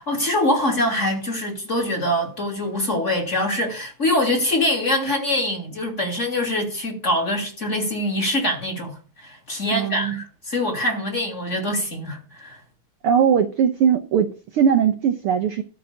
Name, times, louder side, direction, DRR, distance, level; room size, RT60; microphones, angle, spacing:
voice 1, 0.0-12.6, left 1 dB, 25° left, 3.0 m, -24 dB
voice 2, 9.7-10.2 13.0-15.6, right 8 dB, 65° right, 1.4 m, -20 dB
13.5 x 6.1 x 8.4 m
omnidirectional pair, 3.5 m